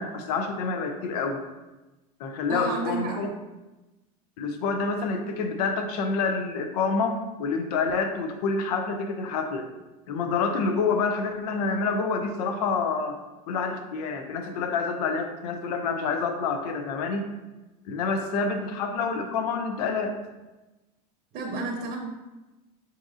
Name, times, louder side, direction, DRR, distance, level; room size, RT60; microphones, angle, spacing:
voice 1, 0.0-1.4 2.2-3.3 4.4-9.7 10.1-13.2 13.5-17.3 17.9-20.1, left 4 dB, 75° left, 5 dB, 0.5 m, -27 dB
voice 2, 2.5-3.2 21.3-22.0, right 3 dB, 45° right, 1 dB, 0.7 m, -31 dB
5.8 x 2.8 x 2.4 m, 1.1 s
hypercardioid pair, 95°, 20 cm